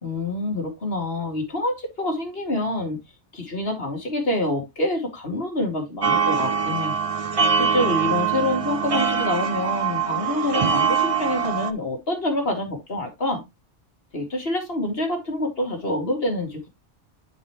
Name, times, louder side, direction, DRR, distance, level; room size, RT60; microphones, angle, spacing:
voice 1, 0.0-3.0 3.3-6.9 7.6-13.4 14.1-16.7, left 1 dB, 55° left, 2.6 m, -26 dB
sound 1, 6.0-11.7, right 6 dB, 35° right, 0.6 m, -23 dB
9.6 x 5.2 x 3.0 m
omnidirectional pair, 1.2 m